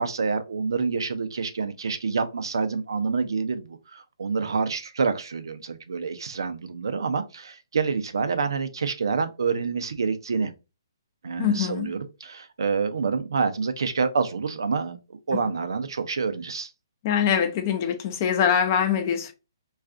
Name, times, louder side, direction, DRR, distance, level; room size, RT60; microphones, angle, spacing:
voice 1, 0.0-10.5 11.2-15.0 15.3-16.7, right 5 dB, 75° right, 0.5 m, -27 dB
voice 2, 11.4-11.9 15.3-15.5 17.0-19.3, left 8 dB, 40° left, 0.6 m, -24 dB
2.4 x 2.4 x 3.6 m
hypercardioid pair, 145°, 2 cm